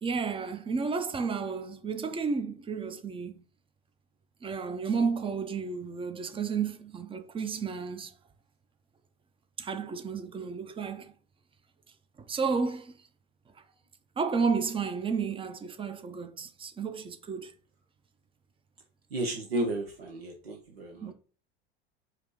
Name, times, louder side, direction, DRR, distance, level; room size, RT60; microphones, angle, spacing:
voice 1, 0.0-3.3 4.4-8.1 9.6-11.1 12.3-13.0 14.2-17.5 21.0-21.1, right 5 dB, 20° right, 0.6 m, -32 dB
voice 2, 19.1-21.1, right 1 dB, 80° right, 0.8 m, -33 dB
4.7 x 2.7 x 3.7 m
figure-of-eight pair, 75°, 30 cm